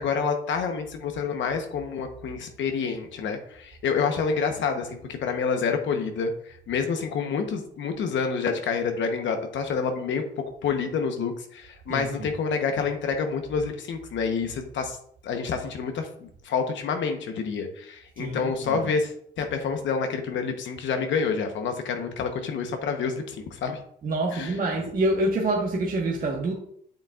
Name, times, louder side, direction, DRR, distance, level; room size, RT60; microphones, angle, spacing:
voice 1, 0.0-10.2 10.6-15.0 15.2-19.1 19.4-23.8 24.3-24.6, left 5 dB, 70° left, 5 dB, 1.0 m, -28 dB
voice 2, 11.9-12.3 18.2-18.8 24.0-26.5, right 2 dB, 45° right, -2 dB, 1.3 m, -26 dB
8.0 x 6.6 x 2.4 m, 0.66 s
cardioid pair, 90°, 20 cm